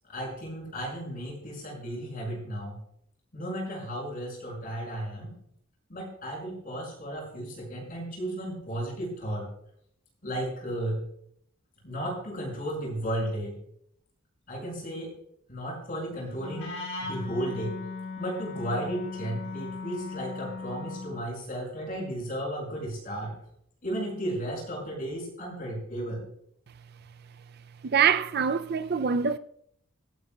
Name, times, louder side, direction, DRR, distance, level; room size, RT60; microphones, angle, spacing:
voice 1, 0.1-2.8 3.3-5.4 5.9-9.5 10.2-11.0 11.8-13.6 14.5-15.1 15.5-17.8 18.2-23.3 23.8-26.2, right 1 dB, 40° left, 6.2 m, -34 dB
Wind instrument woodwind instrument, 16.4-21.2, left 4 dB, 85° left, 4.1 m, -37 dB
voice 2, 27.8-29.4, right 7 dB, 50° right, 0.4 m, -24 dB
26.5 x 9.0 x 2.3 m
head